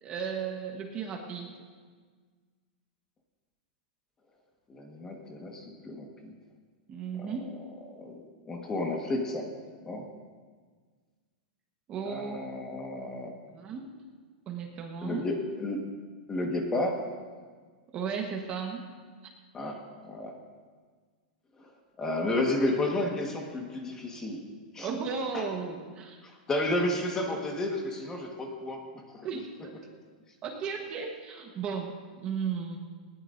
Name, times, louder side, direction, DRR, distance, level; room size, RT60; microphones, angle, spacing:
voice 1, 0.0-1.5 6.9-7.5 11.9-12.4 13.5-13.9 14.5-15.3 17.9-18.8 24.8-26.2 29.2-29.7 30.4-32.0 32.2-32.8, right 6 dB, 20° right, 2 dB, 1.2 m, -35 dB
voice 2, 4.7-6.3 7.2-7.5 7.9-9.6 9.8-10.1 12.0-13.3 15.0-15.9 16.3-17.1 19.5-20.4 21.6-24.4 24.7-24.9 25.3-25.5 26.2-29.4, left 1 dB, 10° left, 1 dB, 1.4 m, -32 dB
19.5 x 19.0 x 2.6 m, 1.5 s
supercardioid pair, 175°, 5 cm